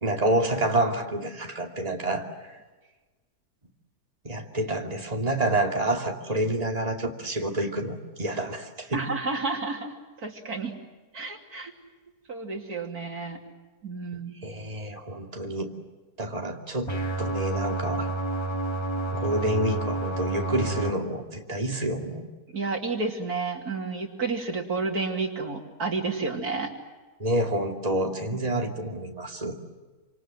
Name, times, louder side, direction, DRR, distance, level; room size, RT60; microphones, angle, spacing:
voice 1, 0.0-2.3 4.2-9.0 14.4-15.7 16.2-16.9 17.2-18.1 19.1-22.2 27.2-29.6, right 1 dB, 25° right, 2 dB, 2.7 m, -28 dB
voice 2, 8.9-10.7 11.1-11.7 12.3-13.4 13.8-14.4 22.5-26.7, right 4 dB, 85° right, 3 dB, 3.5 m, -31 dB
sound 1, 16.9-20.9, right 2 dB, 20° left, 2.0 m, -29 dB
27.5 x 27.0 x 7.7 m, 1.3 s
omnidirectional pair, 1.6 m